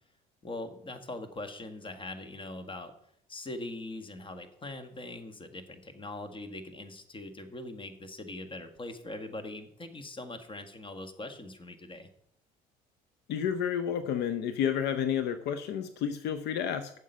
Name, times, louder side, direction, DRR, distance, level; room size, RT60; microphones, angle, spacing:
voice 1, 0.4-2.9 3.3-12.1, left 2 dB, 30° left, 8 dB, 1.7 m, -42 dB
voice 2, 13.3-16.9, left 8 dB, 65° left, 10 dB, 0.8 m, -30 dB
9.6 x 7.3 x 5.5 m, 0.70 s
supercardioid pair, 75°, 18 cm